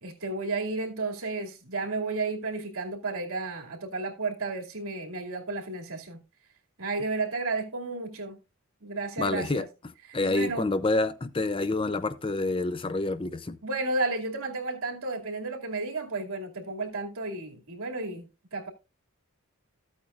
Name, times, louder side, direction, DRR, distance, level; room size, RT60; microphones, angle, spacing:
voice 1, 0.0-6.2 6.8-8.4 8.8-9.7 10.1-10.7 13.6-18.7, right 3 dB, 75° right, 2.6 m, -32 dB
voice 2, 9.2-13.6, left 2 dB, 25° left, 0.5 m, -28 dB
14.0 x 8.6 x 2.5 m
head